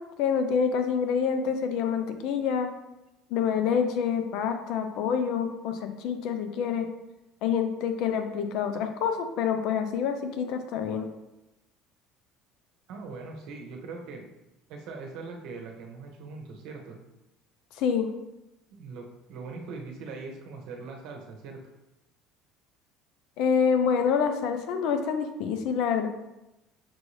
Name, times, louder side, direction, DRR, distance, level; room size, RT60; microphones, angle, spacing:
voice 1, 0.0-2.7 3.3-6.9 7.4-11.1 17.8-18.1 23.4-26.1, left 7 dB, 65° left, 7 dB, 0.5 m, -27 dB
voice 2, 12.9-14.3 14.7-17.0 18.8-21.6, right 4 dB, 70° right, 2 dB, 0.8 m, -41 dB
6.1 x 2.6 x 3.1 m, 0.94 s
cardioid pair, 120°, 0 cm